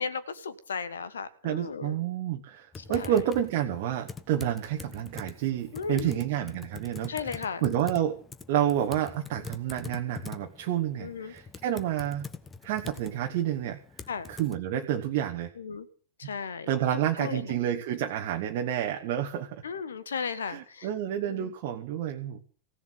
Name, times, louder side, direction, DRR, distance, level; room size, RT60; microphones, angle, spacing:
voice 1, 0.0-2.0 2.8-3.1 5.7-6.3 7.1-7.7 11.0-11.3 14.1-14.3 15.6-15.9 16.2-16.7 17.2-17.6 19.6-20.9 21.3-21.5, left 5 dB, 70° left, 16 dB, 1.4 m, -35 dB
voice 2, 1.4-8.2 8.5-12.3 12.6-13.8 14.3-15.5 16.7-19.6 20.4-22.4, right 10 dB, 50° right, 4 dB, 1.3 m, -29 dB
Typing, 2.7-14.6, left 5 dB, 15° left, 1.2 m, -45 dB
16.5 x 7.3 x 9.7 m, 0.43 s
figure-of-eight pair, 90°, 0 cm